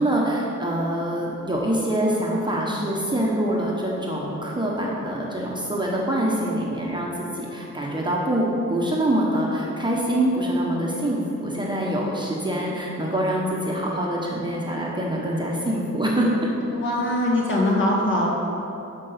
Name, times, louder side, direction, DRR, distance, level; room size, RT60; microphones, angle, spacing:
voice 1, 0.0-7.1 7.4-16.5, right 1 dB, 15° right, -4 dB, 1.1 m, -25 dB
voice 2, 16.7-18.3, left 1 dB, 40° left, -4 dB, 2.1 m, -22 dB
12.5 x 5.4 x 5.8 m, 2.9 s
wide cardioid pair, 165°, 30 cm